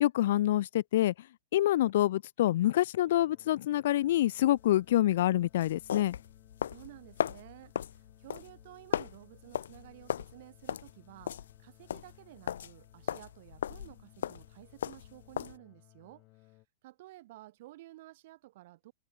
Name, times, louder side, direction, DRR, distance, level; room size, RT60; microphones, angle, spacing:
voice 1, 0.0-1.1 1.5-6.1, left 13 dB, 65° left, 0.4 m, -26 dB
sound 1, 3.1-16.7, left 23 dB, 40° left, 2.5 m, -62 dB
sound 2, 4.6-15.6, left 9 dB, 85° left, 1.6 m, -38 dB
voice 2, 6.7-16.5 16.8-18.9, right 17 dB, 60° right, 2.3 m, -53 dB
hypercardioid pair, 140°, 0 cm